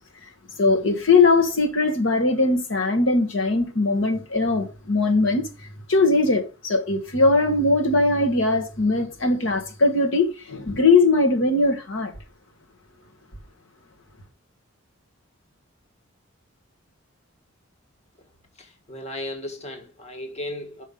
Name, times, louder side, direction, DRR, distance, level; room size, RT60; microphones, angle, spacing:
voice 1, 0.6-5.4 5.9-12.1, left 3 dB, 65° left, 1.3 m, -20 dB
voice 2, 18.6-20.8, left 1 dB, 30° left, 1.5 m, -35 dB
6.3 x 5.2 x 5.2 m
head